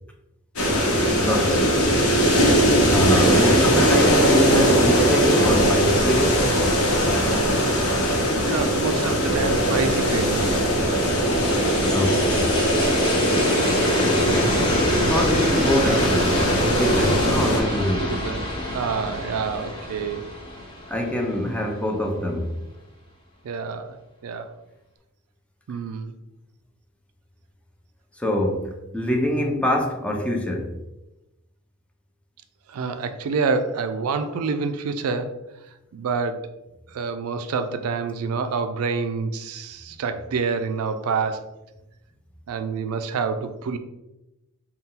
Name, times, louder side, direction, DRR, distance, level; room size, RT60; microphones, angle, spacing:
sound 1, 0.6-17.6, equal, 70° left, 1.0 m, -20 dB
voice 1, 1.2-1.7 2.9-6.5 11.9-12.7 13.8-14.3 15.1-18.2 20.9-22.6 28.2-30.8, left 1 dB, 5° left, 0.4 m, -25 dB
voice 2, 8.4-10.5 18.0-20.3 23.4-24.0 24.2-24.5 25.7-26.1 32.7-35.4 35.9-36.5 36.9-41.5 42.5-43.8, right 4 dB, 75° right, 0.4 m, -27 dB
sound 2, 10.5-21.6, left 1 dB, 20° left, 0.9 m, -27 dB
4.1 x 2.3 x 3.6 m
head